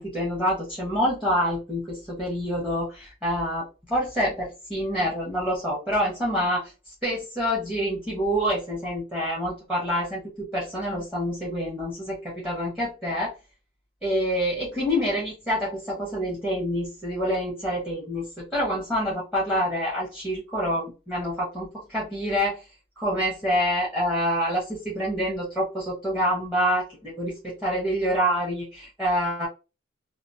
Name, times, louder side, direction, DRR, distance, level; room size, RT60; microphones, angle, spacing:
voice 1, 0.0-6.7 7.0-13.3 14.0-22.6 23.0-29.5, equal, 5° right, -5 dB, 0.9 m, -27 dB
2.9 x 2.0 x 2.6 m, 0.29 s
head